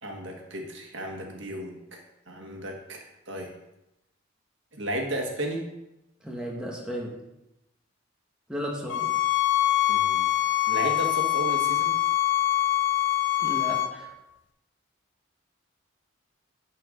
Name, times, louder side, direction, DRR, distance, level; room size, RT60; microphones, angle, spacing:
voice 1, 0.0-3.5 4.7-5.6 9.9-10.3 10.7-11.9, right 1 dB, 65° right, 1 dB, 1.6 m, -34 dB
voice 2, 6.2-7.1 8.5-9.1 13.4-14.1, equal, 5° right, -3 dB, 1.3 m, -34 dB
sound 1, 8.9-13.9, left 14 dB, 60° left, 0.6 m, -24 dB
11.5 x 4.6 x 5.1 m, 0.91 s
head